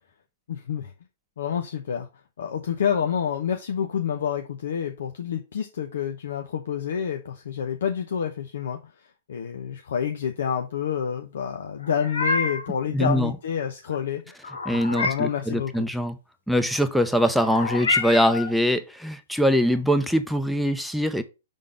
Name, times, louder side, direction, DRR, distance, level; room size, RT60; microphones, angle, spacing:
voice 1, 0.5-0.9 1.4-2.1 2.4-8.8 9.3-14.2 14.7-15.9, left 8 dB, 70° left, 5 dB, 0.8 m, -28 dB
Meow, 11.8-12.7 14.4-15.4 17.4-18.5, left 3 dB, 85° left, 1.3 m, -27 dB
voice 2, 12.9-13.3 14.7-16.2 16.5-21.2, equal, ahead, 9 dB, 0.6 m, -23 dB
5.4 x 3.7 x 4.8 m, 0.28 s
hypercardioid pair, 125°, 0 cm